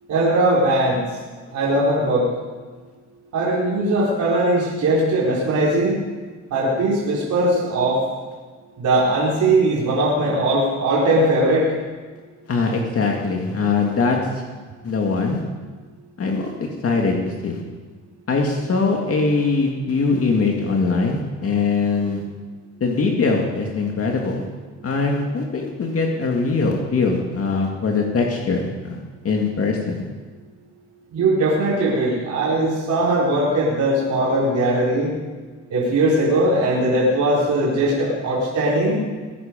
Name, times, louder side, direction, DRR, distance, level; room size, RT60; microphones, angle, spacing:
voice 1, 0.1-1.0 1.5-2.3 3.3-6.0 6.5-8.0 8.8-11.7 31.1-35.1 35.7-39.0, right 1 dB, 70° right, -6 dB, 4.5 m, -19 dB
voice 2, 12.5-14.4 14.8-15.4 16.2-16.5 16.8-17.6 18.3-22.2 22.8-24.4 24.8-29.0 29.2-30.1, left 4 dB, 50° left, 0 dB, 2.3 m, -22 dB
21.0 x 10.5 x 5.3 m, 1.4 s
cardioid pair, 90°, 30 cm